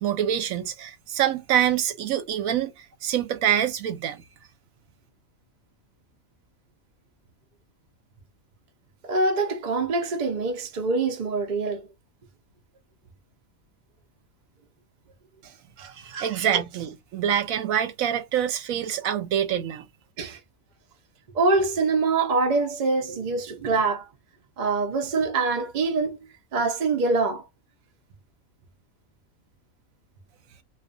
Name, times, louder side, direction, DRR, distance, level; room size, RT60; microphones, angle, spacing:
voice 1, 0.0-2.7 3.0-4.2 15.8-15.9 16.2-19.8, right 10 dB, 80° right, 1.1 m, -25 dB
voice 2, 9.0-11.9 15.8-16.6 19.0-19.1 20.2-20.4 21.3-24.1 24.6-26.2 26.5-27.4, right 3 dB, 45° right, 0.6 m, -25 dB
2.4 x 2.4 x 2.4 m
omnidirectional pair, 1.4 m